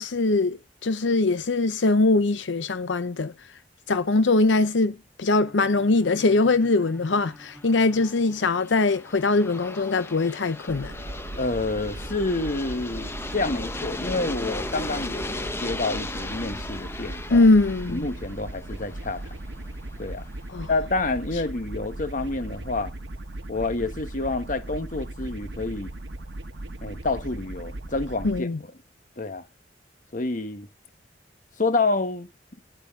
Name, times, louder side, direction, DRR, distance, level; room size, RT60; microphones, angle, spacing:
voice 1, 0.0-3.3 3.9-10.9 17.3-18.1 20.5-20.7 28.2-28.6, left 3 dB, 85° left, 0.7 m, -22 dB
sound 1, 5.3-9.2, equal, ahead, 3.8 m, -50 dB
Aircraft, 7.5-20.3, left 2 dB, 15° left, 0.8 m, -37 dB
sound 2, 10.7-28.4, right 1 dB, 75° right, 1.2 m, -38 dB
voice 2, 11.4-17.5 17.9-19.4 20.0-20.3 20.7-22.9 23.5-25.9 26.8-28.7 29.2-29.4 30.1-30.7 31.6-32.3, left 3 dB, 45° left, 1.3 m, -28 dB
11.5 x 8.1 x 3.7 m
head